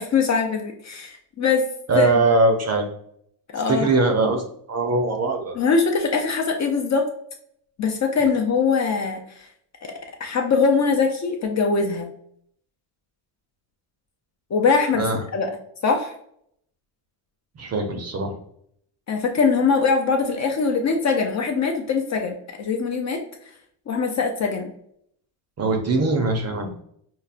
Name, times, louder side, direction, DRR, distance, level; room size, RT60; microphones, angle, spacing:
voice 1, 0.0-1.7 2.0-2.2 3.5-3.9 5.6-7.1 7.8-9.2 9.8-9.9 10.2-12.1 14.5-15.5 15.8-16.1 19.1-23.2 23.9-24.7, left 5 dB, 35° left, 3 dB, 0.4 m, -22 dB
voice 2, 1.9-2.8 3.7-4.4 4.7-5.6 14.9-15.2 17.6-18.3 25.6-26.8, right 3 dB, 35° right, 4 dB, 0.5 m, -21 dB
5.4 x 2.1 x 2.4 m, 0.68 s
cardioid pair, 135°, 50 cm